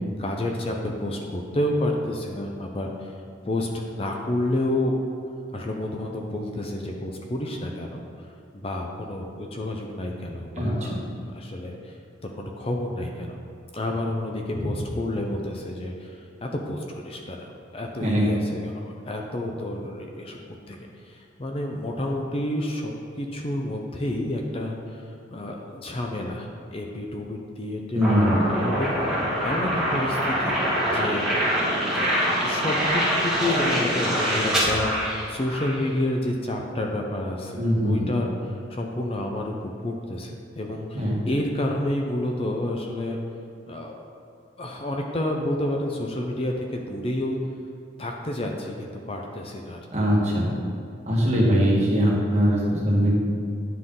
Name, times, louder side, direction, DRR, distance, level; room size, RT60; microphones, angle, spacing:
voice 1, 0.2-3.1 3.4-5.0 5.5-8.0 8.5-11.0 11.3-11.9 12.2-13.4 13.7-20.4 20.7-20.8 21.0-25.0 25.3-28.9 29.4-30.6 30.8-31.3 31.9-43.2 43.7-44.0 44.6-47.4 48.0-49.8, left 1 dB, 30° left, 1 dB, 0.6 m, -30 dB
voice 2, 10.6-11.0 14.6-14.7 18.0-18.3 27.9-28.4 37.6-38.1 40.9-41.2 49.9-50.5 51.0-53.1, equal, 35° right, -5 dB, 1.6 m, -21 dB
sound 1, 28.0-35.8, equal, 5° right, 1.7 m, -24 dB
10.0 x 5.7 x 3.8 m, 2.4 s
head